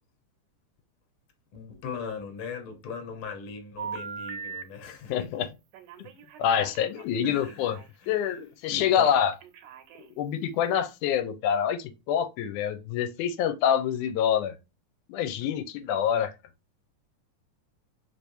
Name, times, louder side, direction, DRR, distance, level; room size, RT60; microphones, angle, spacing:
voice 1, 1.5-5.3 7.2-7.8 8.0-8.3 8.7-9.1, left 5 dB, 55° left, 1.6 m, -39 dB
Telephone, 3.8-4.6 5.7-7.9 8.7-10.2, right 6 dB, 85° right, 2.1 m, -41 dB
voice 2, 5.1-5.5 6.4-7.8 8.1-9.3 10.2-14.5 15.1-16.3, left 9 dB, 90° left, 2.1 m, -26 dB
4.5 x 3.4 x 2.6 m
omnidirectional pair, 3.5 m